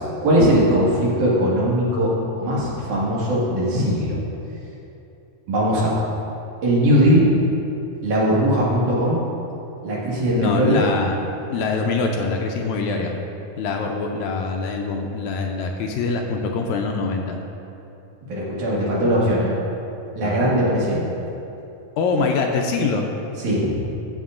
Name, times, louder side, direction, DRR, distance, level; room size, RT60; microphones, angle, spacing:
voice 1, 0.0-2.1 2.4-4.2 5.5-5.9 6.6-7.3 8.0-9.2 9.8-10.8 18.3-19.6 20.1-21.1 23.4-23.9, equal, 75° right, -7 dB, 3.4 m, -19 dB
voice 2, 10.4-11.2 11.5-13.1 13.6-17.4 20.2-20.4 22.0-23.1, left 4 dB, 80° left, 2 dB, 1.8 m, -24 dB
13.0 x 7.9 x 2.5 m, 2.9 s
omnidirectional pair, 3.5 m